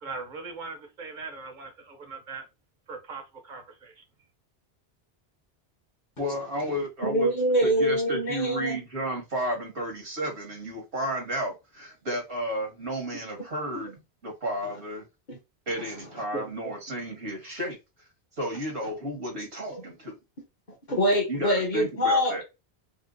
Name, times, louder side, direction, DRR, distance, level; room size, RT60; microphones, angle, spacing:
voice 1, 0.0-2.5 2.9-4.0, right 4 dB, 50° right, 0.8 m, -40 dB
voice 2, 6.2-7.3 7.6-15.0 15.7-17.8 18.4-20.2 21.3-22.4, equal, 85° right, 1.6 m, -32 dB
voice 3, 7.0-8.8 15.3-15.4 16.3-16.4 19.7-19.8 20.9-22.4, equal, 45° left, 1.0 m, -24 dB
4.3 x 2.1 x 2.5 m
omnidirectional pair, 1.1 m